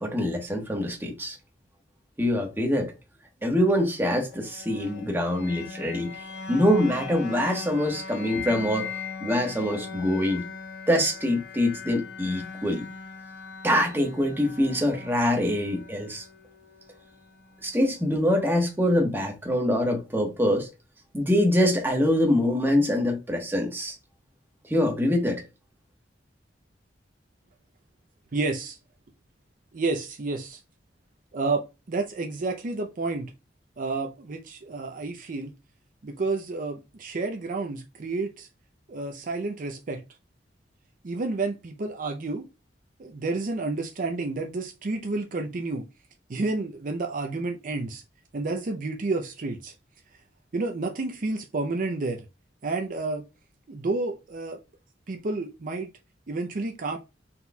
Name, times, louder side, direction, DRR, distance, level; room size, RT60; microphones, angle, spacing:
voice 1, 0.0-1.4 2.2-2.9 3.4-6.1 6.5-8.9 9.2-10.5 10.9-12.8 13.6-16.2 17.6-20.7 21.1-23.9 24.7-25.4, left 1 dB, 10° right, 1.1 m, -24 dB
sound 1, 4.3-18.3, left 5 dB, 65° left, 0.8 m, -40 dB
voice 2, 28.3-28.8 29.7-30.6 31.3-33.3 33.8-35.5 36.0-38.5 38.9-40.0 41.0-42.4 43.0-45.9 46.3-48.0 48.3-49.7 50.5-52.3 52.6-53.2 53.7-54.6 55.1-55.9 56.3-57.0, right 3 dB, 50° right, 0.5 m, -30 dB
4.1 x 4.1 x 2.2 m
head